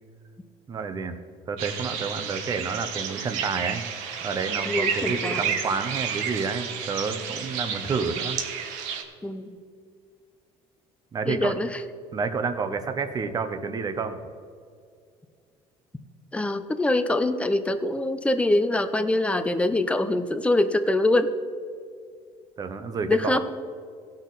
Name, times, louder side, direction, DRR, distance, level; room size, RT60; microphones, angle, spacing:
voice 1, 0.7-1.2 1.5-3.8 4.2-8.4 11.1-11.6 12.1-14.2 22.6-23.4, right 5 dB, 30° right, 9 dB, 1.0 m, -29 dB
sound 1, 1.6-9.0, right 7 dB, 85° right, 1.2 m, -31 dB
voice 2, 4.7-5.4 9.2-9.5 11.3-11.7 16.3-21.3 23.1-23.4, left 2 dB, 10° left, 10 dB, 0.7 m, -24 dB
16.5 x 6.5 x 4.1 m, 2.2 s
cardioid pair, 125°, 12 cm